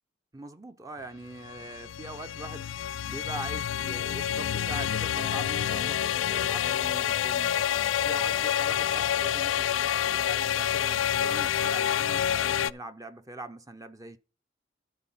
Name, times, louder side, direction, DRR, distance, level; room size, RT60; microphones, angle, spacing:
voice 1, 0.3-2.7 3.1-7.6 8.0-14.2, right 2 dB, 20° right, 0.6 m, -42 dB
sound 1, 1.3-12.7, left 10 dB, 90° left, 0.4 m, -28 dB
12.5 x 4.5 x 5.5 m
head